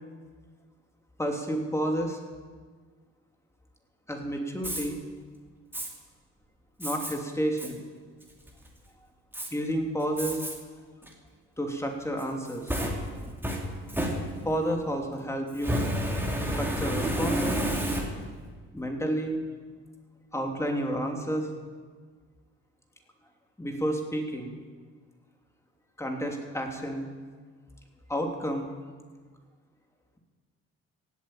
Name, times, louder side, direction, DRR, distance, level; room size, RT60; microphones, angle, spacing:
voice 1, 1.2-2.2 4.1-5.0 6.8-7.8 9.5-10.4 11.6-12.7 14.4-15.8 16.5-17.6 18.7-19.4 20.3-21.5 23.6-24.6 26.0-27.1 28.1-28.7, equal, 10° left, 2 dB, 2.9 m, -30 dB
Fire, 4.6-4.9 5.7-5.9 6.8-7.1 7.6-7.7 8.2-8.7 9.3-9.5 10.2-10.5 11.0-11.1 12.2-14.7 15.5-18.4, equal, 5° right, 2.8 m, -30 dB
16.5 x 8.4 x 9.2 m, 1.5 s
cardioid pair, 90°, 30 cm